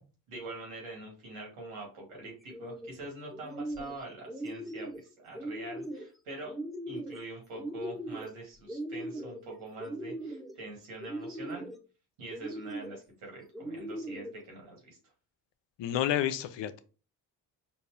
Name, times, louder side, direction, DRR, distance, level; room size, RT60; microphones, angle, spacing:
voice 1, 0.3-4.9 5.2-6.5 6.9-11.6 12.2-15.0, right 2 dB, 85° right, -1 dB, 2.1 m, -44 dB
sound 1, 2.4-2.9 3.3-4.0 4.3-5.0 5.3-6.1 6.5-7.2 7.5-8.3 8.7-9.4 9.8-10.5 11.0-11.8 12.3-13.0 13.5-14.3, right 1 dB, ahead, 0.6 m, -39 dB
voice 2, 15.8-16.8, left 11 dB, 65° left, 11 dB, 0.6 m, -30 dB
4.2 x 2.6 x 3.4 m, 0.35 s
hypercardioid pair, 50°, 47 cm